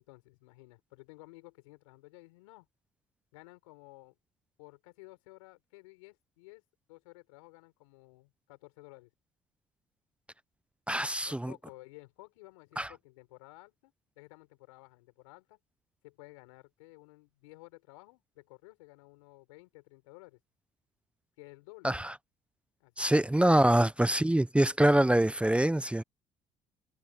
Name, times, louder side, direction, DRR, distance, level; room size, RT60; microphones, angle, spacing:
voice 1, 0.0-2.7 3.3-4.2 4.6-6.6 6.9-9.1 11.0-15.6 16.0-20.4 21.4-22.0 22.8-23.8, left 24 dB, 90° left, 6.8 m, -54 dB
voice 2, 10.9-11.5 12.8-12.9 21.8-22.1 23.0-26.0, right 1 dB, 5° right, 0.7 m, -25 dB
supercardioid pair, 65°, 16 cm